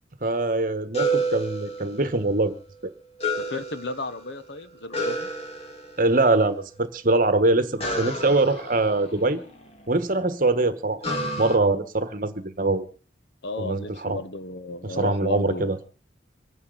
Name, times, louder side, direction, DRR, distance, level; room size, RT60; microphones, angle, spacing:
voice 1, 0.2-2.9 6.0-9.4 9.9-12.9 13.6-14.2 14.8-15.8, right 2 dB, 45° right, 1.4 m, -23 dB
sound 1, 0.9-2.4 3.2-4.4 4.9-6.2 7.8-9.9 11.0-11.6, right 1 dB, 35° left, 1.9 m, -30 dB
voice 2, 3.3-5.3 13.4-15.7, left 2 dB, 65° left, 1.0 m, -34 dB
25.5 x 9.9 x 4.0 m
head